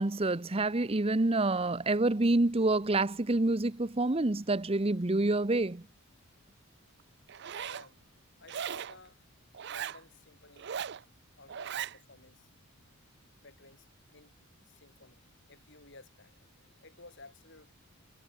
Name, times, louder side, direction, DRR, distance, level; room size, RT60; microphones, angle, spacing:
voice 1, 0.0-5.8, right 2 dB, 25° right, 0.8 m, -27 dB
Zipper (clothing), 7.3-7.9 8.5-9.0 9.5-10.0 10.6-11.0 11.5-12.0, right 8 dB, 50° right, 0.5 m, -38 dB
voice 2, 7.5-8.0 8.4-9.2 9.6-10.9 11.4-12.6 13.1-14.4 14.7-17.7, left 3 dB, 55° left, 7.5 m, -56 dB
head